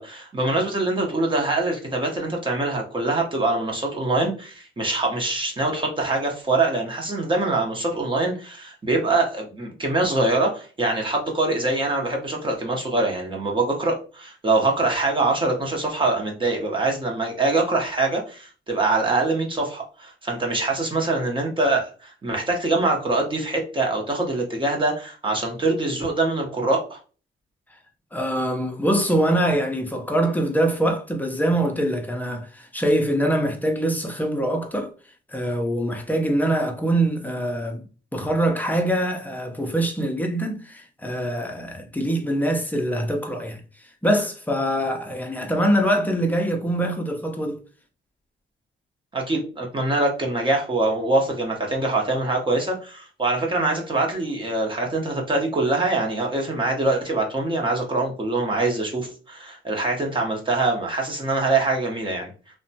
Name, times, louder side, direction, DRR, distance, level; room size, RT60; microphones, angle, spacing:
voice 1, 0.0-27.0 49.1-62.3, right 2 dB, 25° right, 0.8 m, -24 dB
voice 2, 28.1-34.9 35.3-37.8 38.1-47.6, right 1 dB, 10° left, 0.6 m, -24 dB
2.7 x 2.2 x 2.7 m
cardioid pair, 90°, 20 cm